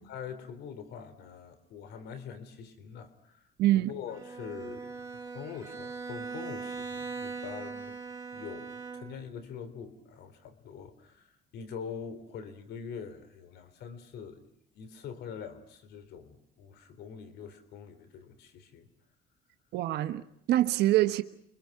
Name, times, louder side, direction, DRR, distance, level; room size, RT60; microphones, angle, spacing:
voice 1, 0.0-3.4 3.8-4.9 5.3-8.0 8.3-14.4 14.7-18.9, left 7 dB, 75° left, 3.7 m, -44 dB
voice 2, 3.6-3.9 19.7-21.2, right 14 dB, 80° right, 1.3 m, -25 dB
Bowed string instrument, 4.1-9.4, right 4 dB, 20° right, 4.3 m, -40 dB
29.5 x 25.0 x 6.0 m
cardioid pair, 110°, 17 cm